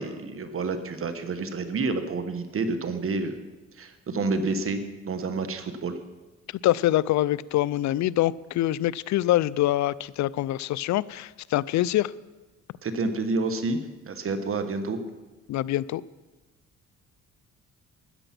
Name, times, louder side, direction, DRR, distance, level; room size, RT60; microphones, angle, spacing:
voice 1, 0.0-3.4 3.8-6.0 12.8-13.8 14.1-15.0, right 3 dB, 45° right, 9 dB, 1.3 m, -29 dB
voice 2, 6.6-12.1 15.5-16.0, left 14 dB, 65° left, 21 dB, 0.5 m, -25 dB
13.5 x 10.0 x 5.9 m, 1.2 s
cardioid pair, 90°, 30 cm